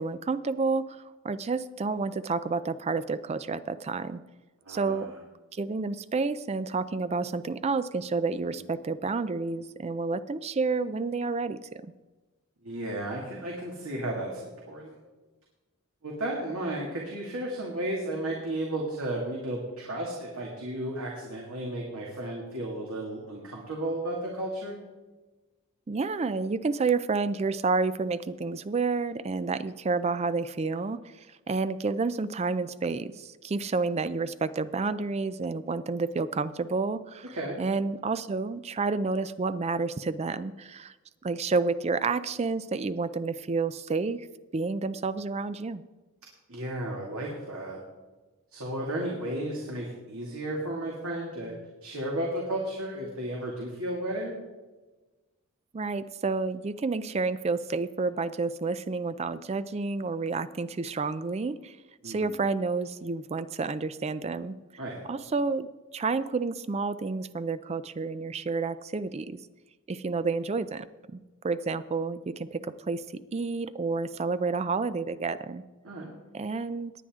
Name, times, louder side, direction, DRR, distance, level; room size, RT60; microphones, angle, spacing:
voice 1, 0.0-4.2 4.7-5.1 5.5-11.9 25.9-31.0 31.5-40.9 41.2-44.3 44.5-45.8 55.7-61.8 62.0-64.5 65.1-65.7 65.9-69.4 69.9-70.9 71.1-71.2 71.4-75.6 76.3-76.9, right 4 dB, 30° right, 14 dB, 0.4 m, -30 dB
voice 2, 4.7-5.1 8.4-8.6 12.6-15.0 16.0-24.8 37.3-37.6 46.5-47.8 48.5-51.5 51.8-54.3 62.0-62.4 64.8-65.0 75.8-76.1, right 1 dB, 75° right, -2 dB, 2.3 m, -33 dB
18.5 x 10.0 x 3.7 m, 1.2 s
head